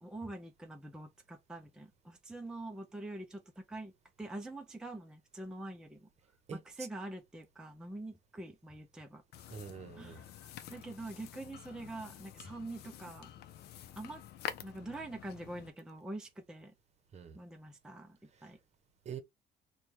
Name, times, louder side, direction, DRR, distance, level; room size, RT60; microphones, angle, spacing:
voice 1, 0.0-3.9 4.2-6.1 6.5-9.5 9.9-13.3 14.0-14.2 14.6-16.7 17.3-18.6, right 2 dB, 5° right, 0.6 m, -45 dB
voice 2, 6.5-6.9 9.5-10.2 17.1-17.4 18.4-18.5 19.0-19.2, right 7 dB, 40° right, 0.9 m, -45 dB
sound 1, 9.3-15.7, left 10 dB, 75° left, 0.6 m, -48 dB
4.3 x 2.3 x 3.3 m
cardioid pair, 110°, 17 cm